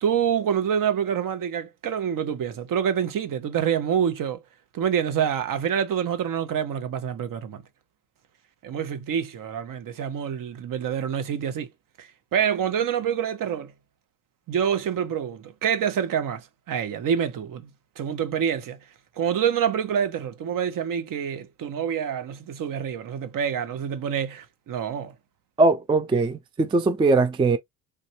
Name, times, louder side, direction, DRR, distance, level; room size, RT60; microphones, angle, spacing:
voice 1, 0.0-4.4 4.7-7.6 8.6-11.7 12.0-13.7 14.5-17.7 18.0-18.8 19.2-25.1, right 8 dB, 45° right, 0.9 m, -26 dB
voice 2, 25.6-27.6, right 3 dB, 10° right, 0.4 m, -21 dB
3.3 x 2.5 x 2.7 m
supercardioid pair, 80°, 44 cm